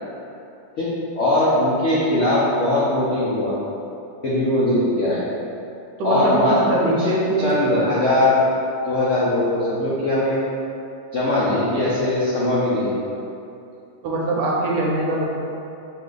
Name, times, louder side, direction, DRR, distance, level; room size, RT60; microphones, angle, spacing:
voice 1, 1.2-3.5 4.2-5.2 6.0-7.1 7.4-8.4 8.8-10.4 11.1-12.9, left 1 dB, 80° left, -8 dB, 0.6 m, -20 dB
voice 2, 6.0-7.5 14.0-15.2, right 2 dB, 75° right, -3 dB, 1.2 m, -22 dB
4.0 x 2.6 x 3.8 m, 2.7 s
omnidirectional pair, 2.1 m